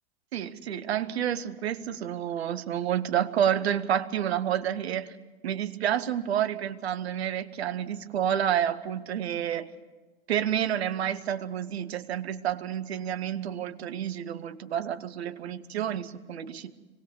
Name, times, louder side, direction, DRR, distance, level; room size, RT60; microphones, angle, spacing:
voice 1, 0.3-5.2 5.4-9.7 10.3-16.7, right 10 dB, 85° right, 13 dB, 1.1 m, -29 dB
25.0 x 18.5 x 6.8 m, 1.3 s
hypercardioid pair, 105°, 31 cm